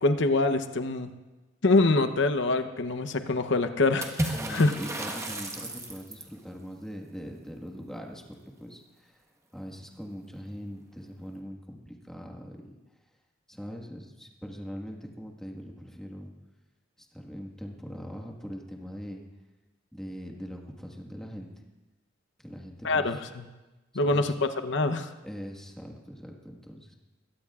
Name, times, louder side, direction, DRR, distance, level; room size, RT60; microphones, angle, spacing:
voice 1, 0.0-1.1 1.6-4.7 22.8-23.4 23.9-24.3 24.6-25.1, left 2 dB, 65° left, 9 dB, 0.8 m, -25 dB
Water / Splash splatter, 4.0-6.4, right 1 dB, 15° right, 1.3 m, -33 dB
voice 2, 4.3-9.2 9.5-12.7 13.5-16.3 17.0-19.2 19.9-21.6 22.4-23.2 24.0-24.3 25.2-26.9, equal, 5° left, 0 dB, 1.6 m, -41 dB
22.0 x 17.0 x 2.4 m, 1.1 s
head